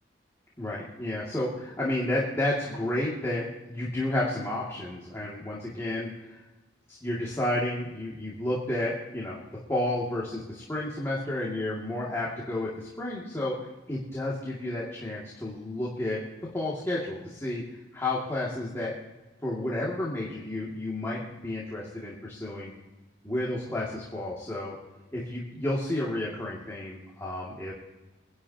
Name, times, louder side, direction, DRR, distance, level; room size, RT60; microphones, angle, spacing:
voice 1, 0.6-6.4 6.9-9.4 9.7-13.6 13.9-16.2 16.5-17.6 17.9-18.9 19.4-22.7 23.2-24.8 25.1-27.7, left 1 dB, 15° left, -6 dB, 2.3 m, -31 dB
25.0 x 11.5 x 2.9 m, 1.1 s
head